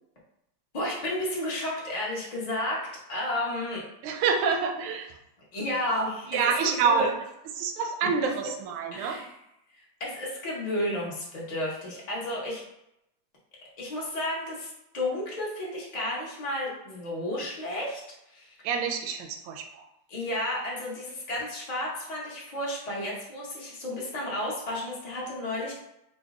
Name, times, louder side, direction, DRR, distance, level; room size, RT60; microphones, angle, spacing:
voice 1, 0.7-2.8 3.1-3.8 5.5-6.3 6.6-7.1 8.9-9.3 10.0-12.6 13.8-18.0 18.3-18.5 20.1-25.7, left 1 dB, 75° left, -5 dB, 0.3 m, -32 dB
voice 2, 4.0-5.2 6.3-7.1 7.6-9.2 18.6-19.9, right 6 dB, 85° right, 4 dB, 1.4 m, -27 dB
4.0 x 2.1 x 3.5 m, 0.83 s
omnidirectional pair, 2.3 m